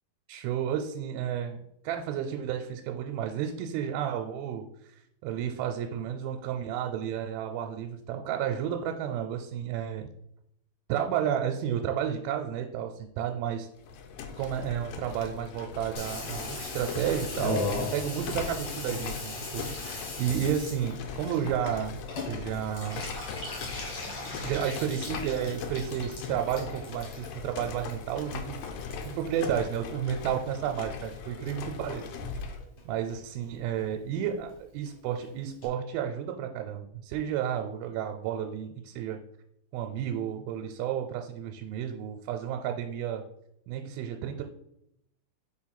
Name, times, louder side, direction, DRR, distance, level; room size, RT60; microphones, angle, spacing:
voice 1, 0.3-4.7 5.2-10.1 10.9-13.7 14.4-17.7 17.9-22.0 22.3-23.1 24.4-28.6 29.2-32.2 32.9-39.2 39.7-43.2 43.7-44.4, right 9 dB, 85° right, 4 dB, 2.4 m, -32 dB
sound 1, 13.8-32.6, left 5 dB, 80° left, 2.1 m, -40 dB
Water tap faucet / Bathtub (filling or washing), 16.0-30.5 30.8-31.5 31.8-31.9 32.1-32.2 32.4-32.8 33.1-33.2 33.4-33.5 33.8-33.9 34.1-34.2 34.5-34.6 34.9-35.0 35.2-35.3 35.6-35.7, left 2 dB, 50° left, 2.1 m, -39 dB
4.9 x 4.2 x 5.7 m, 0.78 s
omnidirectional pair, 4.2 m